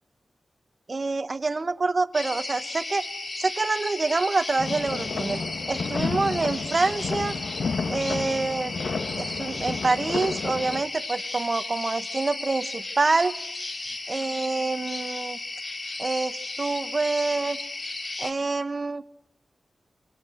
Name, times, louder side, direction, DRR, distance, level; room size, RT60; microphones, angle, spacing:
voice 1, 0.9-3.0 3.4-5.4 5.7-7.3 7.9-8.7 9.2-13.3 14.1-15.4 16.0-17.6 18.2-19.0, right 3 dB, 40° right, 12 dB, 1.1 m, -26 dB
sound 1, 2.1-18.3, left 2 dB, 45° left, 2.8 m, -35 dB
sound 2, 4.6-10.8, left 4 dB, 80° left, 1.5 m, -31 dB
28.0 x 23.5 x 7.9 m, 0.76 s
wide cardioid pair, 115°, 0 cm